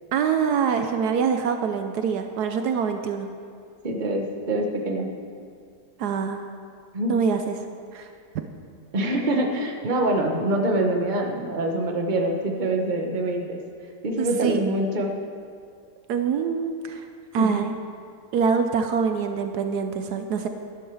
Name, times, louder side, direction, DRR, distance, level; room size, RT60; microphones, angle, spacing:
voice 1, 0.1-3.3 6.0-6.4 7.1-7.6 7.9-8.5 14.2-14.6 16.1-17.0 17.3-17.7 18.3-20.5, right 6 dB, 75° right, 7 dB, 1.2 m, -25 dB
voice 2, 3.8-5.1 6.9-7.2 8.9-13.6 14.0-15.1 17.4-17.6, right 1 dB, 30° right, 2 dB, 1.2 m, -25 dB
12.0 x 12.0 x 4.8 m, 2.4 s
omnidirectional pair, 1.8 m